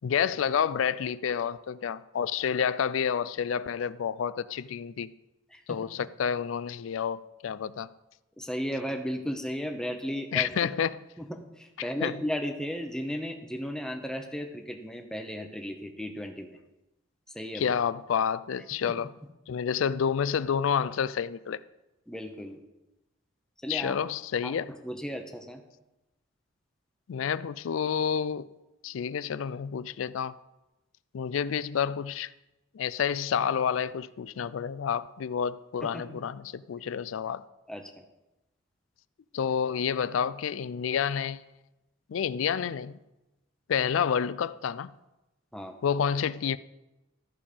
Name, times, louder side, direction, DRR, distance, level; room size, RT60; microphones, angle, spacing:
voice 1, 0.0-5.1 5.7-7.9 10.3-11.0 12.0-12.2 17.5-19.1 19.5-21.6 23.7-24.7 27.1-28.5 28.8-30.4 31.1-32.3 32.7-37.4 39.3-41.4 42.1-43.0 43.7-44.9 45.8-46.6, left 7 dB, 75° left, 0.4 m, -29 dB
voice 2, 8.4-10.7 11.2-16.6 17.3-17.7 18.8-19.0 22.1-22.6 23.6-24.0 24.4-25.6 35.8-36.2 37.7-38.0 45.5-45.8, equal, 5° left, 0.9 m, -35 dB
13.5 x 5.3 x 5.0 m
head